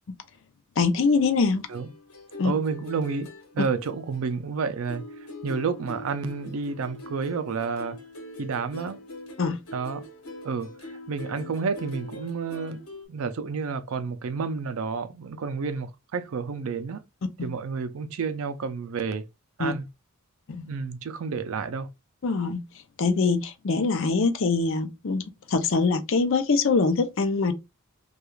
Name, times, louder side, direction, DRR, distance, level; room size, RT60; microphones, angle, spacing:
voice 1, 0.8-1.6 2.4-2.5 9.4-9.6 17.4-17.5 19.6-19.7 20.6-20.7 22.2-22.6 23.0-27.5, left 4 dB, 60° left, 0.5 m, -23 dB
sound 1, 1.0-4.6 4.9-13.1, left 1 dB, 80° left, 1.1 m, -43 dB
voice 2, 2.4-3.3 3.5-5.0 5.4-8.0 8.4-9.0 9.7-10.0 10.4-10.7 11.1-12.8 13.1-17.0 17.4-19.2 19.6-19.9 20.7-21.9, right 5 dB, 70° right, 0.4 m, -30 dB
2.3 x 2.3 x 3.0 m
head